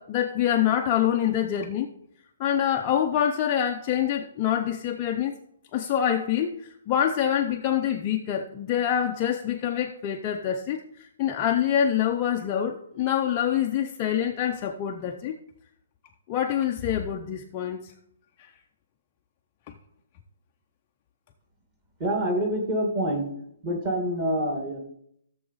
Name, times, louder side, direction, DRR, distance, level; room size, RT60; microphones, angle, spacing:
voice 1, 0.0-1.9 2.4-5.4 5.7-6.6 6.9-15.3 16.3-17.9 18.4-18.5, left 10 dB, 15° left, 2 dB, 0.4 m, -26 dB
voice 2, 22.0-23.3 23.6-24.8, equal, 15° right, 1 dB, 1.6 m, -26 dB
15.5 x 7.0 x 4.0 m, 0.73 s
hypercardioid pair, 180°, 0 cm